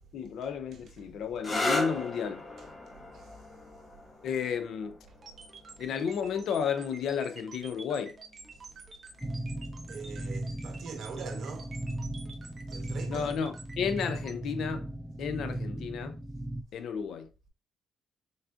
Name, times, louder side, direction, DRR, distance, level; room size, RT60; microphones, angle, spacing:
voice 1, 0.1-2.4 4.2-5.0 5.8-8.2 13.1-14.9 15.2-16.2 16.7-17.3, left 7 dB, 70° left, 0.5 m, -32 dB
sound 1, 1.4-8.8 9.8-10.3 13.8-14.2, left 2 dB, 30° left, 0.8 m, -38 dB
sound 2, 5.2-14.3, right 4 dB, 35° right, 1.0 m, -49 dB
sound 3, 9.2-16.6, right 1 dB, 10° right, 0.4 m, -37 dB
voice 2, 9.9-11.8 12.7-13.3, right 6 dB, 70° right, 1.0 m, -43 dB
4.0 x 3.4 x 2.4 m
cardioid pair, 90°, 0 cm